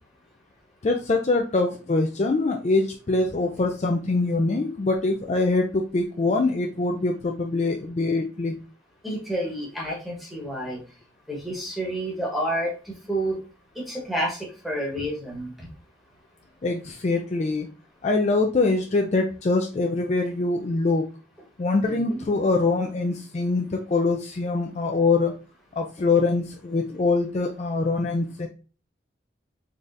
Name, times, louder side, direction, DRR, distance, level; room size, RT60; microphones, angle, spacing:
voice 1, 0.8-8.5 16.6-17.7 18.0-21.1 21.6-25.3 25.8-28.5, left 3 dB, 35° left, 2 dB, 0.4 m, -24 dB
voice 2, 9.0-10.8 11.3-13.4 13.7-15.7 21.8-22.3, right 1 dB, ahead, -3 dB, 1.1 m, -30 dB
4.0 x 3.4 x 2.5 m, 0.35 s
head